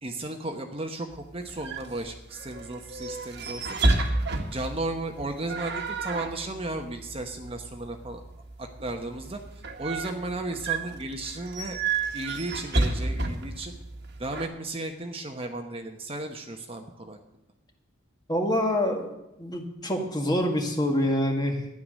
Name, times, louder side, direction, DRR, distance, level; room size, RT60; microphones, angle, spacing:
voice 1, 0.0-3.8 4.5-8.2 8.6-9.4 9.8-11.8 12.1-13.7 14.2-17.2, right 2 dB, 30° right, 4 dB, 1.1 m, -34 dB
sound 1, 1.1-14.5, right 2 dB, 55° right, 1.6 m, -31 dB
voice 2, 18.3-21.7, left 1 dB, 20° left, 3 dB, 1.8 m, -26 dB
13.5 x 10.5 x 6.4 m, 0.90 s
head